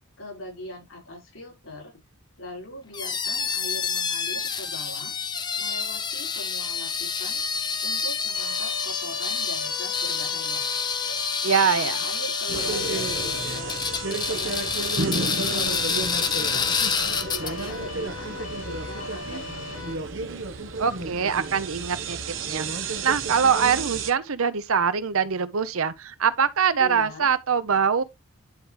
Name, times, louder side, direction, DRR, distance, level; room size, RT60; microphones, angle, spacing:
voice 1, 0.2-2.0 2.4-5.1 5.6-7.4 7.8-10.8 11.5-13.8 14.3-16.8 17.2-20.1 26.8-27.3, left 1 dB, 70° left, 5.6 m, -41 dB
sound 1, 2.9-17.8, left 6 dB, 20° left, 0.6 m, -28 dB
sound 2, 8.3-20.0, left 3 dB, 90° left, 2.1 m, -38 dB
voice 2, 11.4-12.0 20.8-28.0, right 6 dB, 80° right, 0.7 m, -23 dB
sound 3, 12.5-24.1, right 3 dB, 60° right, 1.1 m, -32 dB
10.5 x 4.8 x 3.3 m
head